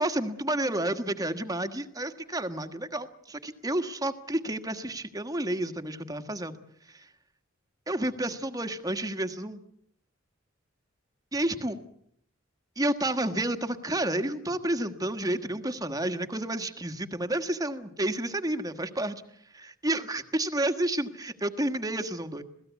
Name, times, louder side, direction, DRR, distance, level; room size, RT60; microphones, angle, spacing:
voice 1, 0.0-6.6 6.9-7.1 7.9-9.6 11.3-11.8 12.8-19.1 19.5-22.4, right 1 dB, 20° right, 9 dB, 1.4 m, -30 dB
27.5 x 17.5 x 8.3 m, 0.71 s
head